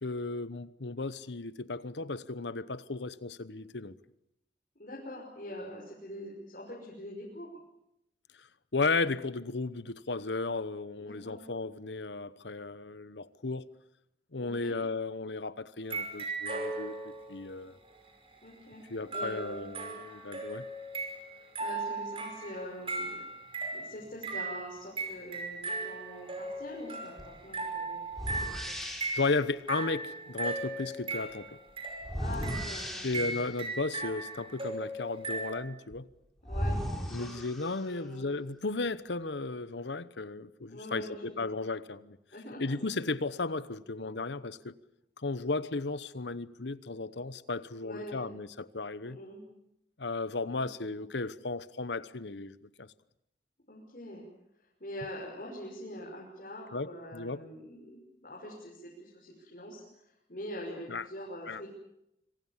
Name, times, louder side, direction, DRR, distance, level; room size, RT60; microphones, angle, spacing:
voice 1, 0.0-3.9 8.7-13.7 14.3-17.0 17.3-17.8 18.9-20.6 28.8-31.5 33.0-36.1 37.1-42.2 42.6-44.7 45.2-49.2 50.0-52.9 56.7-57.4 60.9-61.0 61.5-61.6, left 3 dB, 85° left, 1.0 m, -35 dB
voice 2, 4.8-7.5 11.0-11.4 14.4-14.8 18.4-19.7 21.4-23.2 23.7-28.0 28.4-28.8 32.1-33.1 36.5-37.3 37.8-38.3 40.7-41.5 42.3-42.8 47.8-48.3 49.0-49.4 50.5-50.7 51.0-51.1 53.7-54.2 54.8-59.8 60.3-61.7, equal, 50° left, 6.0 m, -44 dB
sound 1, 15.8-17.4 19.1-35.5, right 3 dB, 30° right, 5.5 m, -37 dB
sound 2, 27.2-27.4 28.1-29.4 32.0-33.6 35.9-36.0 36.4-38.1, equal, ahead, 4.4 m, -36 dB
26.0 x 25.0 x 7.4 m
head